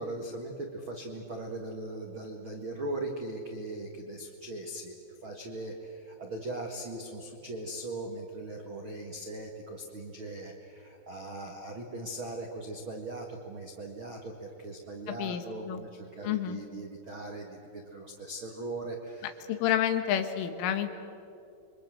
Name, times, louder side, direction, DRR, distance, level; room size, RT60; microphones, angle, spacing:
voice 1, 0.0-4.9 5.2-19.4, right 2 dB, 85° right, 2 dB, 1.1 m, -39 dB
voice 2, 15.1-15.8 16.2-16.6 19.5-20.9, left 10 dB, 85° left, 8 dB, 4.0 m, -29 dB
28.5 x 24.0 x 7.8 m, 2.8 s
omnidirectional pair, 5.5 m